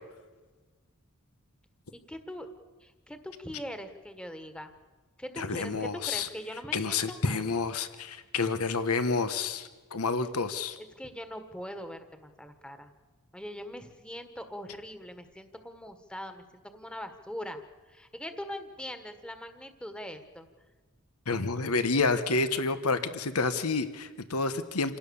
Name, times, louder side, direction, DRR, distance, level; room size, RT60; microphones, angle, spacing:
voice 1, 1.9-2.5 2.8-4.7 5.2-7.5 10.8-12.9 13.3-17.6 17.9-20.5, equal, 5° left, 8 dB, 1.5 m, -41 dB
voice 2, 5.4-6.3 6.7-10.8 21.3-25.0, left 4 dB, 90° left, 11 dB, 1.3 m, -29 dB
28.0 x 17.5 x 7.1 m, 1.3 s
head